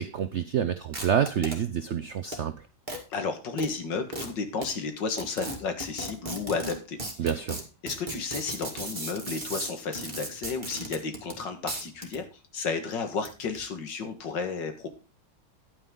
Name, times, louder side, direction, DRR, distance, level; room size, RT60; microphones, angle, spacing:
voice 1, 0.0-2.5 7.2-7.6, right 8 dB, 75° right, 11 dB, 0.6 m, -28 dB
sound 1, 0.9-1.6 2.3-2.4 2.9-3.0 3.6-3.7 4.1-4.3 4.6-4.7 5.2-11.4 11.7-12.2 13.1-13.6, right 1 dB, 25° right, 2.1 m, -36 dB
voice 2, 3.1-7.3 7.8-12.3 12.5-14.9, left 4 dB, 75° left, 7 dB, 2.2 m, -32 dB
11.0 x 9.0 x 3.8 m, 0.33 s
omnidirectional pair, 2.0 m